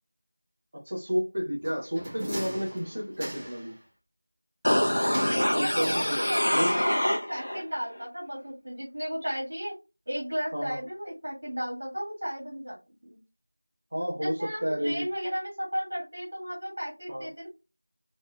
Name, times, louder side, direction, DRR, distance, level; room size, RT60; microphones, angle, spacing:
voice 1, 0.7-3.7 4.9-6.2 6.5-6.8 10.5-10.8 13.9-15.1 17.1-17.3, equal, 30° right, -6 dB, 1.0 m, -31 dB
sound 1, 1.6-3.7 5.1-6.5 6.8-6.9, right 1 dB, 10° right, 0.7 m, -39 dB
sound 2, 4.6-7.6 8.0-8.1, equal, 55° left, 0.7 m, -26 dB
voice 2, 5.0-9.7 10.1-12.8 13.0-13.2 14.2-17.5, equal, 45° right, -2 dB, 2.4 m, -34 dB
4.2 x 3.1 x 2.4 m, 0.26 s
figure-of-eight pair, 175°, 0 cm